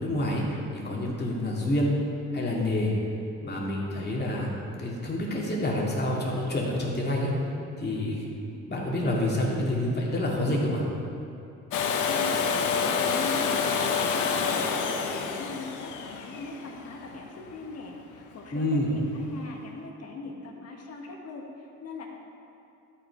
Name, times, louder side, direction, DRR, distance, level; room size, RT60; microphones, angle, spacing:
voice 1, 0.0-1.9 2.3-2.9 3.4-4.5 4.8-7.3 7.8-8.2 8.7-10.8 18.5-18.9, left 1 dB, 35° left, -4 dB, 2.4 m, -28 dB
Domestic sounds home sounds, 11.7-17.5 19.4-19.5, left 6 dB, 80° left, 0.9 m, -28 dB
voice 2, 11.9-22.1, left 3 dB, 55° left, 0 dB, 1.7 m, -39 dB
12.5 x 5.7 x 4.7 m, 2.6 s
cardioid pair, 90°, 30 cm